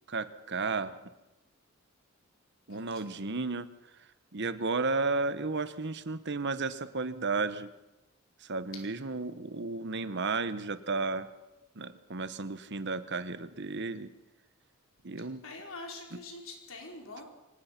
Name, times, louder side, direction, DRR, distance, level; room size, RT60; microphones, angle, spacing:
voice 1, 0.1-1.0 2.7-3.7 4.3-7.7 8.4-11.3 11.8-14.1 15.0-15.4 16.1-16.2, right 3 dB, 55° right, 13 dB, 1.1 m, -33 dB
voice 2, 15.4-17.2, left 3 dB, 65° left, 1 dB, 4.9 m, -44 dB
24.5 x 18.5 x 6.0 m, 0.98 s
head